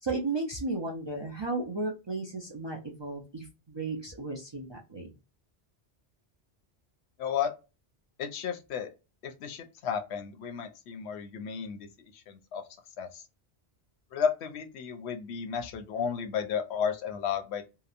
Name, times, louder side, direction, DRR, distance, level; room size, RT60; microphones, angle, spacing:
voice 1, 0.0-5.1, right 3 dB, 40° right, 0.4 m, -34 dB
voice 2, 7.2-7.5 8.2-8.9 9.2-11.9 12.1-12.6 13.0-13.2 14.1-17.6, left 7 dB, 90° left, 0.9 m, -33 dB
2.9 x 2.0 x 2.4 m
omnidirectional pair, 1.1 m